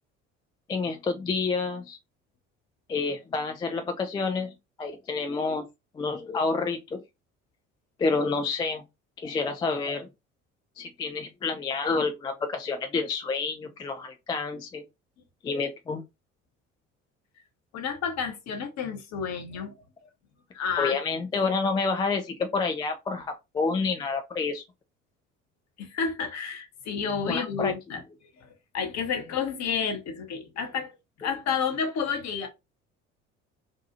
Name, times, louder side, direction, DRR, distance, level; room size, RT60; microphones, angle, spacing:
voice 1, 0.7-2.0 2.9-5.7 5.9-7.0 8.0-8.8 9.2-10.1 10.8-14.8 15.4-16.0 20.8-24.6 27.3-27.7, left 4 dB, 15° left, 0.3 m, -29 dB
voice 2, 17.7-20.1 20.5-21.0 25.8-28.0 28.4-30.9 31.2-32.5, left 6 dB, 45° left, 0.9 m, -30 dB
2.7 x 2.3 x 2.5 m
figure-of-eight pair, 55°, 37 cm